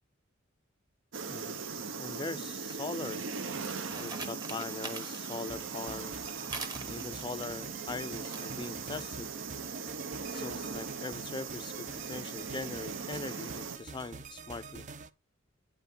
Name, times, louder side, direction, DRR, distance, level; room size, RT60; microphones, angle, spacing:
sound 1, 1.1-13.8, right 5 dB, 70° right, 0.8 m, -39 dB
voice 1, 1.3-3.3 4.0-6.3 6.8-9.3 10.2-14.9, left 3 dB, 20° left, 0.3 m, -41 dB
sound 2, 2.0-9.3, right 3 dB, 20° right, 1.1 m, -46 dB
sound 3, 5.5-15.1, right 4 dB, 35° right, 0.5 m, -47 dB
9.3 x 5.7 x 4.3 m
head